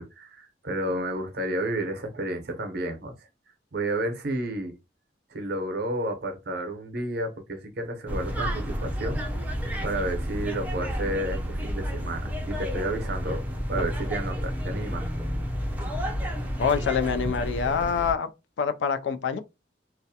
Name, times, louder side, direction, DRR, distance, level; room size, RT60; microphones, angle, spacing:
voice 1, 0.0-3.1 3.7-4.7 5.3-9.2 9.8-13.4 13.7-15.1, right 1 dB, 65° right, 0.6 m, -31 dB
sound 1, 8.1-18.1, equal, 10° right, 0.5 m, -31 dB
voice 2, 16.6-18.3 18.6-19.4, left 6 dB, 90° left, 0.4 m, -25 dB
2.3 x 2.1 x 2.7 m
head